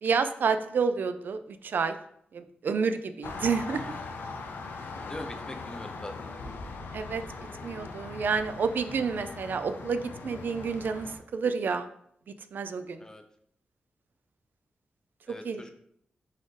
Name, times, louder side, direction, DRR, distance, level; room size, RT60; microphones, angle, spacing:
voice 1, 0.0-1.9 2.3-3.8 6.9-7.2 7.6-11.9 12.5-13.0 15.4-15.7, right 5 dB, 70° right, 10 dB, 0.3 m, -29 dB
sound 1, 3.2-11.2, left 3 dB, 90° left, 0.5 m, -40 dB
voice 2, 5.1-6.4 13.0-13.2 15.3-15.7, left 1 dB, 20° left, 6 dB, 0.5 m, -42 dB
4.1 x 3.8 x 3.2 m, 0.69 s
wide cardioid pair, 115°, 3 cm